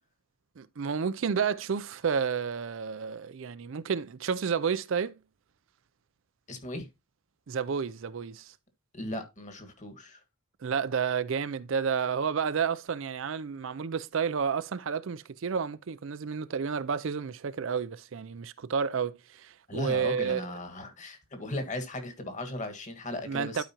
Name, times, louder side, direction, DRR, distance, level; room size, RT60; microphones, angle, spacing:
voice 1, 0.6-5.1 7.5-8.5 10.6-20.4 23.3-23.6, right 6 dB, 60° right, 0.4 m, -31 dB
voice 2, 6.5-6.9 8.9-10.2 19.7-23.6, left 1 dB, 35° left, 1.6 m, -37 dB
11.5 x 5.0 x 2.9 m
head